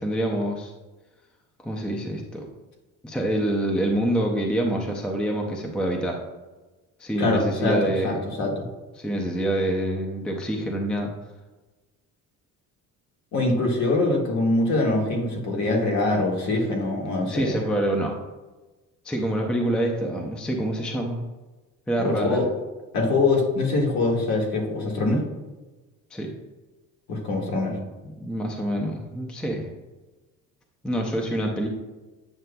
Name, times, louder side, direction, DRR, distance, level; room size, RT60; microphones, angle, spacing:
voice 1, 0.0-0.7 1.6-2.5 3.0-6.2 7.0-8.3 9.0-11.1 17.3-18.1 19.0-21.2 21.9-22.4 26.1-26.3 28.2-29.7 30.8-31.7, right 1 dB, 5° left, 1 dB, 0.4 m, -26 dB
voice 2, 7.2-8.7 13.3-17.6 22.0-22.5 22.9-25.2 27.1-27.8, left 2 dB, 55° left, -1 dB, 1.6 m, -23 dB
9.1 x 6.7 x 2.2 m, 1.2 s
cardioid pair, 175°, 33 cm